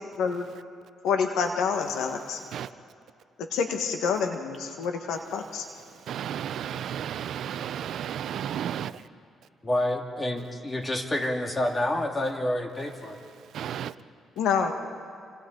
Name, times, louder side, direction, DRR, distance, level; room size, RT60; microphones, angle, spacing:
voice 1, 1.0-2.4 3.5-5.7 14.4-14.7, left 6 dB, 85° left, 1.5 m, -27 dB
voice 2, 5.7-9.0 13.2-13.9, right 9 dB, 70° right, 0.6 m, -33 dB
voice 3, 9.6-13.2, left 1 dB, 20° left, 2.4 m, -28 dB
29.0 x 25.5 x 4.0 m
cardioid pair, 90°, 0 cm